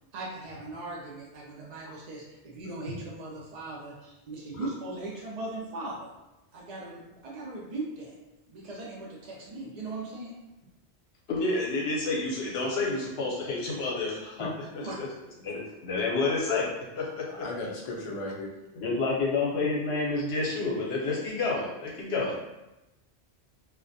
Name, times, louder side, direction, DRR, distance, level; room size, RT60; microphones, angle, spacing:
voice 1, 0.1-6.1 6.5-8.2 8.5-10.4 14.8-14.9, right 2 dB, 55° right, -4 dB, 0.5 m, -39 dB
voice 2, 11.3-14.6 15.0-15.1 15.4-16.6 17.0-17.2 18.8-22.4, left 3 dB, 75° left, -3 dB, 0.9 m, -29 dB
voice 3, 17.3-18.5, left 2 dB, 50° left, -2 dB, 0.4 m, -36 dB
2.3 x 2.1 x 2.6 m, 0.98 s
omnidirectional pair, 1.1 m